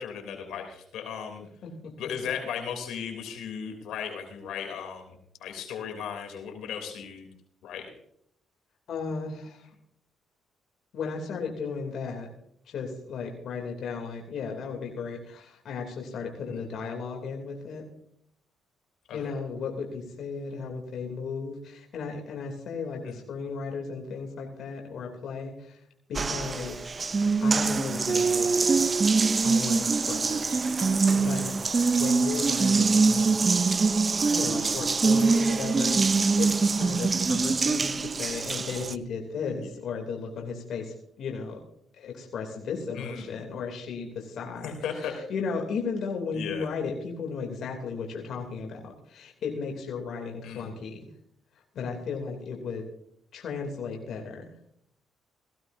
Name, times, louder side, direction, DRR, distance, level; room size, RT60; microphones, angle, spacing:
voice 1, 0.0-1.4 2.0-7.3 7.6-7.9 16.5-16.6 19.1-19.3 23.0-23.1 30.2-30.6 39.4-39.7 42.9-43.3 44.6-45.1 46.3-46.7 50.4-50.8, left 7 dB, 85° left, 4 dB, 3.1 m, -36 dB
voice 2, 8.9-9.7 10.9-12.3 12.6-17.9 19.1-25.8 26.1-26.8 27.4-28.8 29.4-30.4 30.9-31.5 31.9-33.2 34.3-36.0 36.4-41.6 42.0-51.1 51.7-52.8 53.3-54.5, left 5 dB, 70° left, 2 dB, 2.9 m, -35 dB
Water tap faucet, 26.1-38.9, right 4 dB, 35° right, 0.6 m, -24 dB
18.0 x 15.5 x 2.7 m, 0.70 s
cardioid pair, 90°, 0 cm